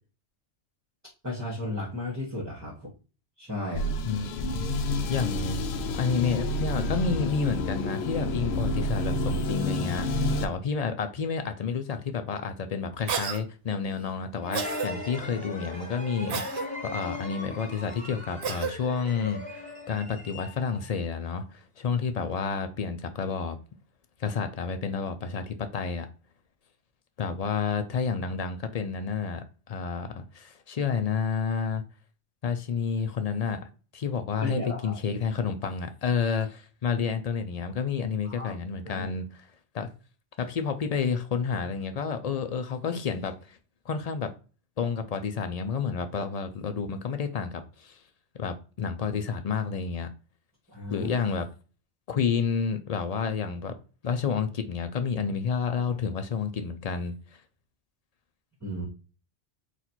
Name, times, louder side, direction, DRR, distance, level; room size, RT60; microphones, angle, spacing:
voice 1, 1.2-2.9 3.4-4.0 34.4-35.0 38.2-38.5 38.8-39.1 50.7-51.1 58.6-58.8, left 1 dB, 15° right, 1.1 m, -34 dB
sound 1, 3.7-10.5, left 1 dB, 70° left, 0.8 m, -29 dB
voice 2, 4.0-4.7 5.1-5.6 5.9-23.6 24.2-26.1 27.2-31.8 32.4-39.5 39.7-39.9 40.4-43.6 43.9-44.3 44.8-48.0 48.3-50.1 50.9-51.5 52.1-53.7 54.0-57.1, left 6 dB, 50° left, 0.4 m, -30 dB
Cough, 13.1-13.4 14.5-14.9 16.3-16.7 18.4-18.7, right 7 dB, 70° right, 0.9 m, -31 dB
sound 2, 14.4-20.9, left 2 dB, 5° left, 1.2 m, -38 dB
4.1 x 2.5 x 4.3 m
omnidirectional pair, 1.2 m